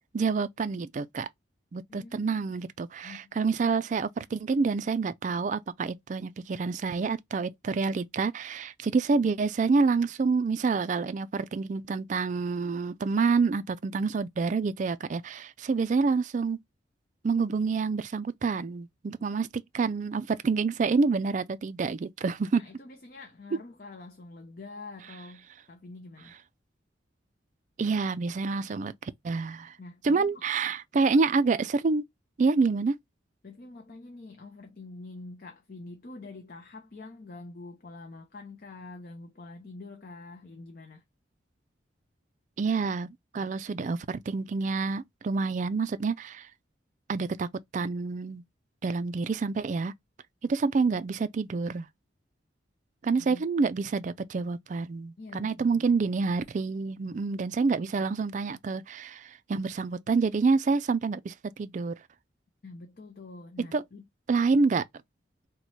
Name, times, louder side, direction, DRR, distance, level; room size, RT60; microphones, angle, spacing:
voice 1, 0.1-1.3 1.7-16.6 17.2-19.5 19.7-22.6 27.8-29.7 30.0-32.0 32.4-32.9 42.6-43.1 43.3-46.5 47.1-47.5 47.7-48.4 48.8-49.9 50.4-51.9 53.0-61.9 63.7-63.8 64.3-64.8, right 4 dB, 40° right, 0.3 m, -27 dB
voice 2, 1.9-2.4 3.0-3.4 22.5-26.4 29.8-30.4 33.4-41.0 53.2-53.5 55.2-55.9 62.6-64.0, left 3 dB, 50° left, 0.6 m, -46 dB
3.0 x 2.2 x 4.1 m
head